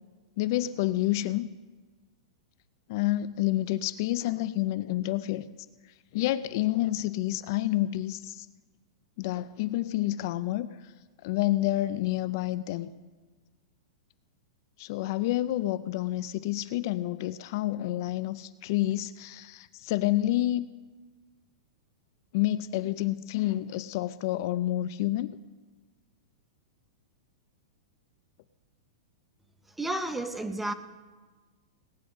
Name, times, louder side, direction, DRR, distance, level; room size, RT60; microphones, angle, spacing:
voice 1, 0.4-1.5 2.9-5.5 6.1-8.5 9.2-10.9 11.2-12.9 14.8-20.7 22.3-25.4, left 15 dB, 45° left, 15 dB, 0.4 m, -29 dB
voice 2, 29.8-30.7, right 1 dB, 5° right, 9 dB, 0.6 m, -31 dB
18.0 x 9.5 x 6.4 m, 1.3 s
supercardioid pair, 165°, 3 cm